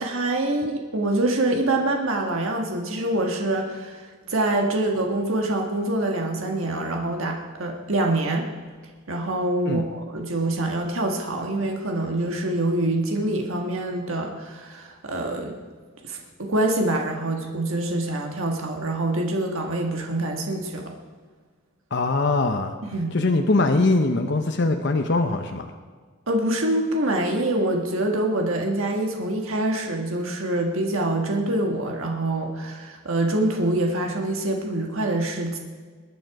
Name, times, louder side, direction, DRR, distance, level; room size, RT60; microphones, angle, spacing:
voice 1, 0.0-8.5 9.1-15.6 16.0-20.9 22.8-23.2 26.3-35.6, right 1 dB, 65° right, 2 dB, 1.6 m, -25 dB
voice 2, 21.9-22.7 23.1-25.7, left 2 dB, 50° left, 5 dB, 0.8 m, -22 dB
21.0 x 9.2 x 4.8 m, 1.5 s
head